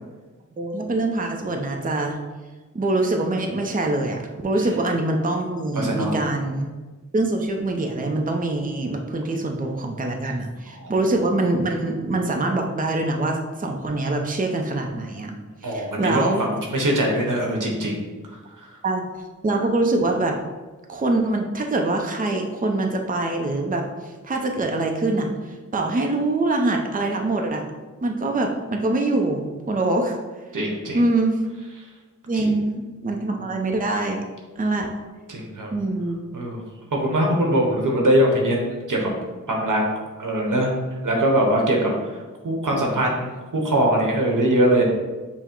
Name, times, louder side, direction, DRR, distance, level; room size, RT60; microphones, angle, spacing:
voice 1, 0.6-2.2 2.7-6.7 7.1-15.3 15.7-16.4 18.8-19.0 19.4-20.4 20.9-27.6 28.0-30.2 30.9-31.4 32.3-34.2 34.6-34.9 35.7-36.2, right 2 dB, 25° right, 2 dB, 0.5 m, -24 dB
voice 2, 5.7-6.2 10.8-10.9 15.6-18.0 18.3-18.7 30.5-31.0 32.3-32.5 35.3-35.7 36.3-36.6 36.9-39.1 39.5-39.8 40.2-40.7 41.0-44.8, right 1 dB, 85° right, -1 dB, 0.9 m, -22 dB
5.8 x 2.0 x 4.4 m, 1.3 s
wide cardioid pair, 70°, 31 cm